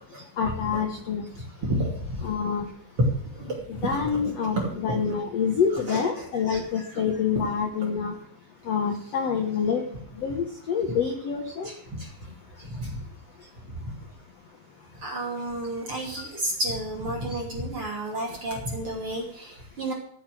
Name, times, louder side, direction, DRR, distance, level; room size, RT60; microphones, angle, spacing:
voice 1, 0.4-1.2 2.2-2.6 3.7-8.1 8.7-9.8 10.2-11.7, left 6 dB, 75° left, 4 dB, 1.4 m, -27 dB
voice 2, 1.6-2.2 3.0-3.1 3.3-4.7 5.9-6.0 11.6-11.7 12.0-12.1 12.8-13.0 13.7-13.8 15.0-19.9, right 1 dB, 35° right, -1 dB, 3.0 m, -30 dB
15.0 x 7.2 x 7.6 m, 0.66 s
omnidirectional pair, 5.0 m